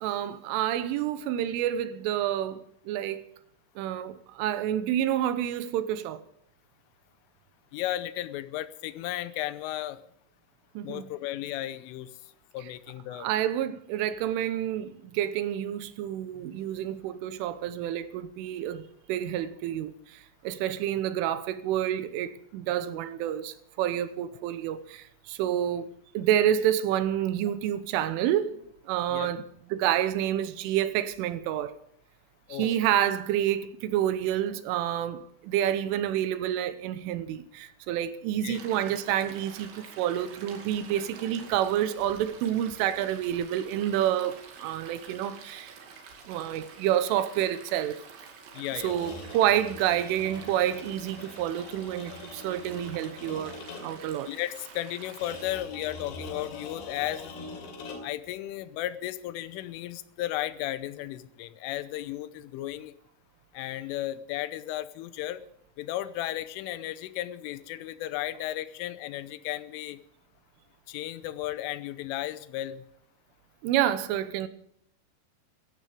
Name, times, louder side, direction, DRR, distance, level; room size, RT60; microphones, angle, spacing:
voice 1, 0.0-3.2 3.8-6.2 10.8-11.1 12.6-12.7 13.1-25.9 26.2-31.7 32.5-45.8 46.3-48.0 48.7-53.5 53.8-54.3 73.6-74.5, right 11 dB, 85° right, 3.5 m, -29 dB
voice 2, 7.7-10.0 10.8-12.1 12.5-13.3 29.1-29.3 32.5-32.7 38.4-38.6 48.5-49.0 54.3-57.3 58.0-62.9 63.5-65.4 65.8-70.0 70.9-72.9, left 14 dB, 85° left, 3.4 m, -34 dB
Stream, 38.5-55.5, right 5 dB, 70° right, 4.6 m, -48 dB
sound 1, 48.8-54.1 55.2-58.3, left 3 dB, 60° left, 4.4 m, -43 dB
16.0 x 14.0 x 5.0 m
omnidirectional pair, 5.6 m